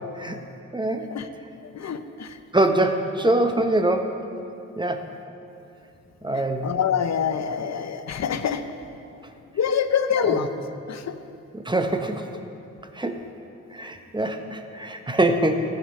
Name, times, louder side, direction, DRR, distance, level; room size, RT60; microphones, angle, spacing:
voice 1, 0.7-1.1 2.5-4.2 4.8-5.0 6.2-6.7 10.2-10.5 11.5-12.3 12.9-13.2 13.7-15.8, right 1 dB, 15° right, 6 dB, 0.9 m, -24 dB
voice 2, 1.7-2.4 6.6-8.6 9.5-10.5 10.9-11.2, left 7 dB, 55° left, 10 dB, 0.7 m, -25 dB
14.0 x 5.1 x 5.5 m, 2.7 s
cardioid pair, 60°, 33 cm